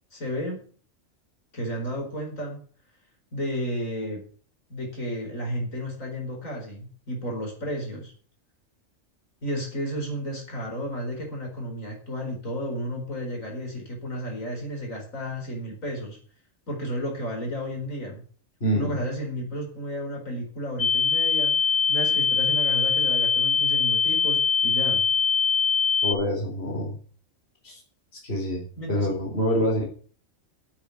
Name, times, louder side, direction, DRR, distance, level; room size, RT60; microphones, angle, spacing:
voice 1, 0.1-0.6 1.5-2.6 3.3-4.2 4.7-8.1 9.4-16.2 16.7-18.2 18.7-25.1 28.8-29.1 29.6-29.7, equal, 85° left, 1 dB, 5.1 m, -32 dB
voice 2, 18.6-19.0 26.0-27.0 27.6-27.8 28.2-29.8, equal, 50° left, -1 dB, 3.8 m, -26 dB
sound 1, 20.8-26.1, left 6 dB, 70° left, 1.5 m, -22 dB
8.9 x 8.8 x 9.3 m, 0.43 s
omnidirectional pair, 1.3 m